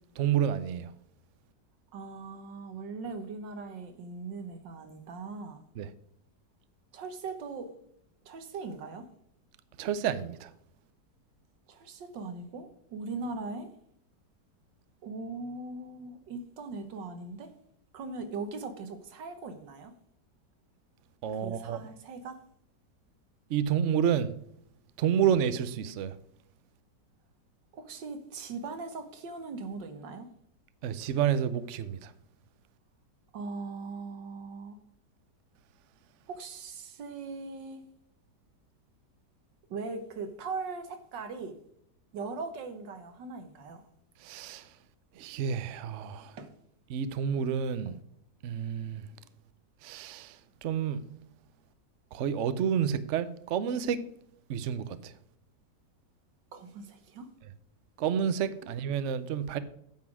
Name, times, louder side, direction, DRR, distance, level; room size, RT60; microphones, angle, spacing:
voice 1, 0.2-0.9 5.8-5.9 9.8-10.5 21.2-21.8 23.5-24.3 25.0-26.1 30.8-32.1 44.2-44.7 45.2-46.3 46.9-48.0 48.4-49.0 49.8-51.0 52.1-54.0 54.5-55.1 58.0-59.6, right 8 dB, 65° right, 0.7 m, -29 dB
voice 2, 1.9-5.6 6.9-7.7 8.3-9.1 11.7-13.7 15.0-17.5 17.9-19.9 21.4-22.4 27.7-30.3 33.3-34.8 36.3-37.8 39.7-41.6 42.1-43.8 46.4-46.5 56.5-57.3, right 4 dB, 80° right, 1.8 m, -40 dB
9.2 x 5.8 x 6.1 m
omnidirectional pair, 1.9 m